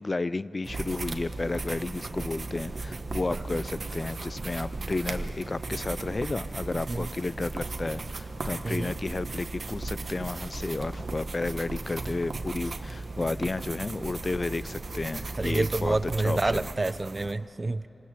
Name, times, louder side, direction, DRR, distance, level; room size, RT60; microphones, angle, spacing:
voice 1, 0.0-16.7, left 3 dB, 40° left, 17 dB, 0.5 m, -32 dB
sound 1, 0.6-17.3, right 3 dB, 50° right, 1.4 m, -36 dB
voice 2, 8.6-8.9 15.4-17.9, right 2 dB, 35° right, 16 dB, 0.6 m, -28 dB
27.0 x 19.5 x 7.8 m, 2.9 s
cardioid pair, 70°, 0 cm